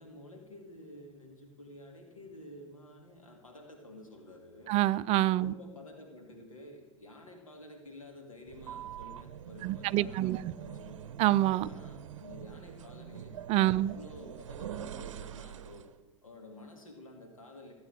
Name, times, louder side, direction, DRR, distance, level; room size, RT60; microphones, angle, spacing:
voice 1, 0.0-4.7 5.4-11.1 11.7-13.4 13.7-15.9 16.2-17.7, left 1 dB, 85° left, 2.4 m, -51 dB
voice 2, 4.7-5.5 9.6-10.4 11.2-11.7 13.5-13.9, right 15 dB, 40° right, 0.5 m, -26 dB
sound 1, 8.5-16.0, right 9 dB, 70° right, 0.7 m, -44 dB
16.0 x 8.8 x 6.7 m
figure-of-eight pair, 85°, 17 cm